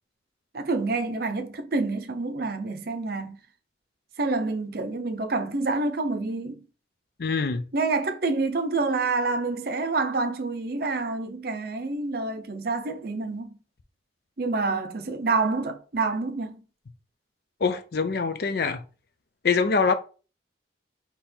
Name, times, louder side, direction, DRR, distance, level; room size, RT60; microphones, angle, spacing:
voice 1, 0.5-3.4 4.2-6.6 7.7-13.6 14.4-16.6, right 3 dB, 55° right, 0.6 m, -27 dB
voice 2, 7.2-7.6 17.6-18.8 19.4-19.9, left 5 dB, 55° left, 0.5 m, -24 dB
3.7 x 2.9 x 4.3 m
head